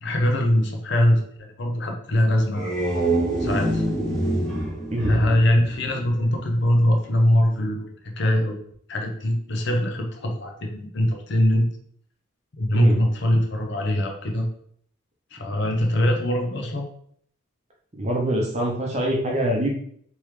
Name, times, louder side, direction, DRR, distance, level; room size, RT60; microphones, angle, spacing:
voice 1, 0.0-2.7 3.4-3.8 5.0-8.6 8.9-11.8 12.6-14.5 15.3-16.9, left 1 dB, 55° left, 2 dB, 0.6 m, -22 dB
sound 1, 2.3-6.6, right 1 dB, 5° left, 1.0 m, -26 dB
voice 2, 18.0-19.7, right 1 dB, 30° right, -1 dB, 0.7 m, -24 dB
3.4 x 3.0 x 3.2 m, 0.63 s
head